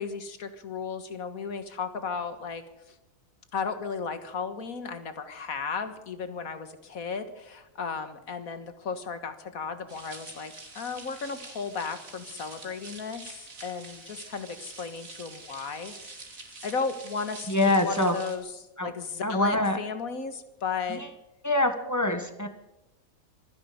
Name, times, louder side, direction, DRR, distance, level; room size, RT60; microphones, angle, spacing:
voice 1, 0.0-3.0 3.5-21.1, left 5 dB, 85° left, 10 dB, 2.0 m, -35 dB
sound 1, 9.9-18.4, right 3 dB, 70° right, 3.2 m, -46 dB
voice 2, 17.5-18.1 18.8-18.9 19.2-19.8 20.9-21.0 21.4-22.5, left 2 dB, 15° left, 7 dB, 1.5 m, -24 dB
26.0 x 10.5 x 5.2 m, 0.95 s
omnidirectional pair, 1.4 m